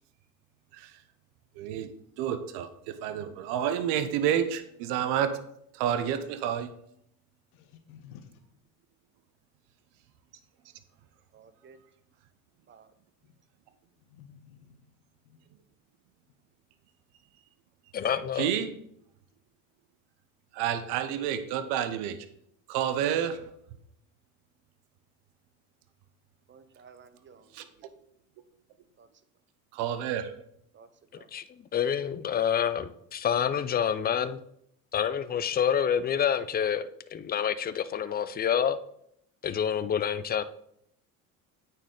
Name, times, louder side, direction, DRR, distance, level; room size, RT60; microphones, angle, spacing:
voice 1, 1.6-5.4 5.7-6.7 18.3-18.8 20.5-22.3 22.7-23.5 27.5-27.6 29.7-30.4, right 9 dB, 70° right, 0.8 m, -29 dB
voice 2, 7.5-8.4 13.2-13.4 14.0-14.9 15.2-15.4, left 8 dB, 85° left, 0.9 m, -52 dB
voice 3, 11.3-11.8 12.7-12.9 26.5-27.9 29.0-29.1 30.7-30.9 31.2-31.3, right 5 dB, 25° right, 0.8 m, -55 dB
voice 4, 17.9-18.5 31.3-34.4 34.9-38.8 39.4-40.4, left 8 dB, 25° left, 0.4 m, -28 dB
9.0 x 4.4 x 3.7 m
supercardioid pair, 80°, 42 cm